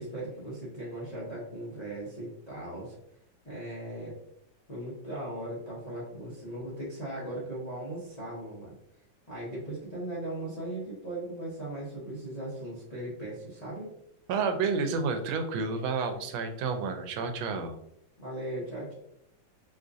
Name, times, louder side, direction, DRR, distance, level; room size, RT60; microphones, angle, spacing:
voice 1, 0.0-2.9 3.4-4.2 4.7-8.7 9.3-13.9 18.2-18.9, right 1 dB, 65° left, -7 dB, 0.4 m, -38 dB
voice 2, 14.3-17.7, right 4 dB, 85° right, 6 dB, 1.4 m, -30 dB
4.3 x 2.4 x 2.5 m, 0.76 s
omnidirectional pair, 2.2 m